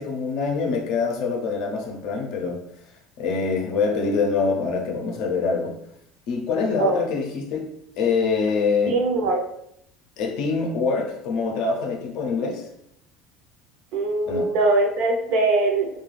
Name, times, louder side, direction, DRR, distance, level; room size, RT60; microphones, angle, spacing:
voice 1, 0.0-2.6 3.2-5.7 6.3-7.7 8.0-9.0 10.2-12.7 14.2-14.4, left 4 dB, 60° left, 0.5 m, -24 dB
voice 2, 8.9-9.4 13.9-15.9, right 2 dB, 65° right, 0.6 m, -21 dB
2.4 x 2.2 x 3.1 m
cardioid pair, 150°, 0 cm